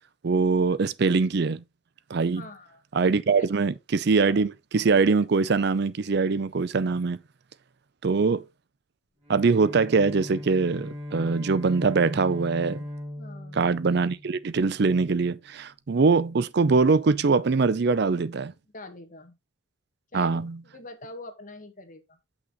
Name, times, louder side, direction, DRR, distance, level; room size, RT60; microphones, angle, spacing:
voice 1, 0.2-1.6 2.1-2.4 2.9-7.2 8.0-8.4 9.3-12.8 13.5-18.5 20.1-20.6, right 4 dB, 55° right, 0.5 m, -23 dB
voice 2, 2.2-2.8 3.4-3.5 13.2-13.7 18.7-19.4 20.1-22.2, left 2 dB, 40° left, 1.6 m, -44 dB
Bowed string instrument, 9.2-14.7, left 1 dB, 35° right, 5.2 m, -39 dB
7.9 x 5.9 x 3.8 m
head